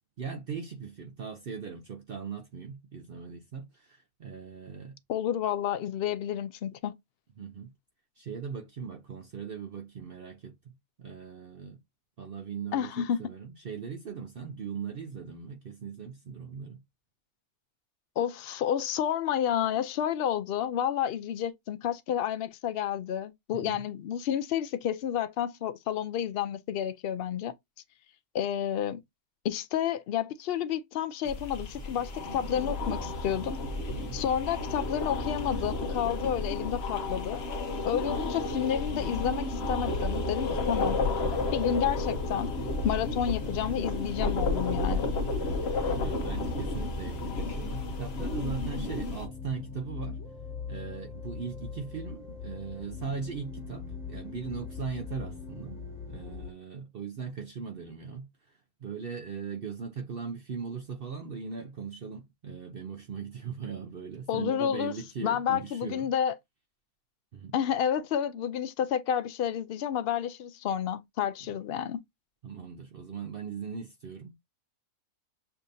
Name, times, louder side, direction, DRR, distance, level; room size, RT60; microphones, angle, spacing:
voice 1, 0.2-5.0 7.4-7.7 8.2-11.8 12.2-16.8 23.5-23.8 33.9-34.2 45.4-50.2 50.7-55.8 56.1-66.1 67.3-67.5 72.4-74.3, right 6 dB, 55° right, 0.6 m, -39 dB
voice 2, 5.1-7.0 12.7-13.2 18.2-27.5 28.3-29.0 29.4-33.5 34.1-37.4 37.8-41.0 41.5-42.5 42.8-45.1 64.3-64.9 65.2-66.4 67.5-72.0, left 9 dB, 85° left, 0.5 m, -30 dB
sound 1, 31.3-49.3, left 2 dB, 50° left, 1.0 m, -32 dB
sound 2, 38.8-56.5, left 5 dB, 25° left, 1.6 m, -42 dB
6.8 x 2.7 x 2.6 m
omnidirectional pair, 1.6 m